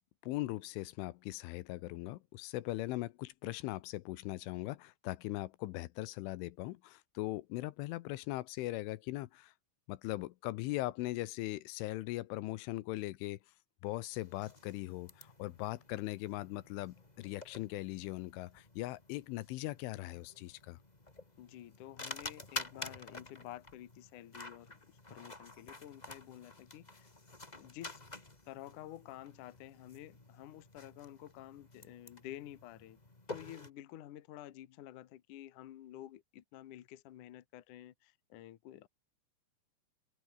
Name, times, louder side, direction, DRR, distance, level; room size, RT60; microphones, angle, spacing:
voice 1, 0.2-9.5 9.9-13.4 13.8-20.8, left 18 dB, 85° left, 3.3 m, -40 dB
sound 1, 14.1-33.7, left 2 dB, 20° left, 1.0 m, -50 dB
voice 2, 21.4-27.1 27.6-28.0 28.5-33.0 33.3-38.9, left 13 dB, 65° left, 2.1 m, -51 dB
open air
omnidirectional pair, 5.6 m